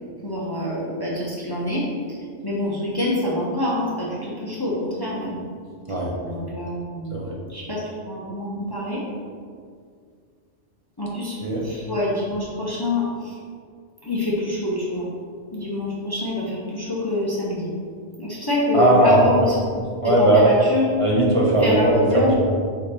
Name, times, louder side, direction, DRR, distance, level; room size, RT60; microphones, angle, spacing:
voice 1, 0.2-1.8 2.4-5.4 6.2-9.0 11.0-13.0 14.0-15.1 15.5-17.7 18.2-19.8 20.2-20.9 21.6-22.4, left 1 dB, 20° left, -6 dB, 1.0 m, -26 dB
voice 2, 18.7-19.3 20.0-20.5 21.0-22.4, right 1 dB, 30° right, -4 dB, 1.0 m, -18 dB
5.2 x 5.1 x 4.3 m, 2.1 s
omnidirectional pair, 1.2 m